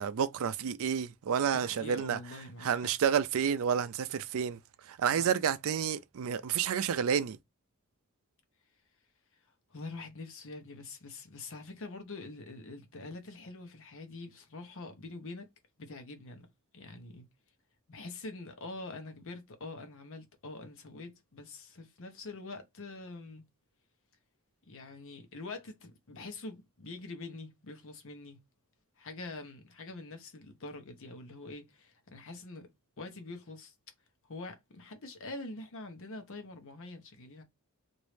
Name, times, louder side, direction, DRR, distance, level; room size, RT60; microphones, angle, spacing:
voice 1, 0.0-2.2 2.6-4.6 4.9-7.4, right 8 dB, 65° right, 0.4 m, -30 dB
voice 2, 1.5-2.9 5.1-5.3 9.7-15.5 15.8-16.5 16.7-17.3 17.9-23.4 24.7-28.4 29.0-32.7 33.0-33.7 34.2-37.4, left 2 dB, 60° left, 0.9 m, -45 dB
3.1 x 2.6 x 3.2 m
head